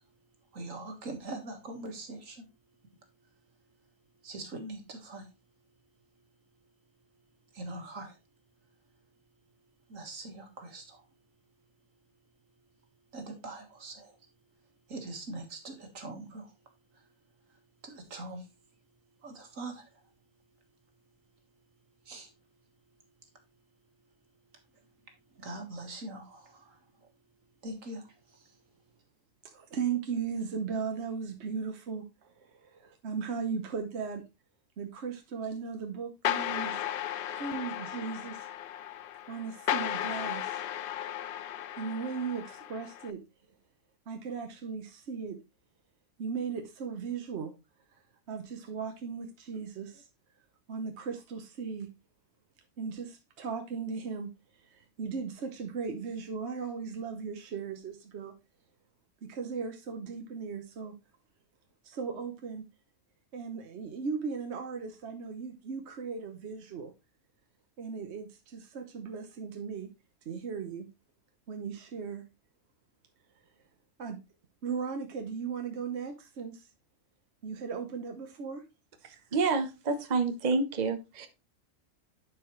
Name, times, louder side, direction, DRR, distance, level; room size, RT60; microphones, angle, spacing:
voice 1, 0.5-2.5 4.2-5.3 7.5-8.2 9.9-11.0 13.1-14.2 14.9-16.5 17.8-18.5 19.2-19.9 22.1-22.3 25.4-26.8 27.6-28.5, right 2 dB, 80° right, 2.0 m, -42 dB
voice 2, 29.4-34.3 34.8-36.8 37.3-38.5 39.3-40.6 41.8-43.2 44.1-45.4 46.2-47.5 48.3-50.1 50.7-51.9 52.8-54.3 54.6-58.3 59.2-61.0 61.8-62.7 63.3-66.9 67.8-69.9 70.2-70.9 71.5-72.3 74.0-74.2 74.6-76.7 77.4-78.6, right 5 dB, 60° right, 1.2 m, -37 dB
sound 1, 36.2-43.1, left 11 dB, 60° left, 0.6 m, -35 dB
voice 3, 79.0-81.3, right 4 dB, 35° right, 1.0 m, -29 dB
11.0 x 4.9 x 3.1 m
omnidirectional pair, 1.3 m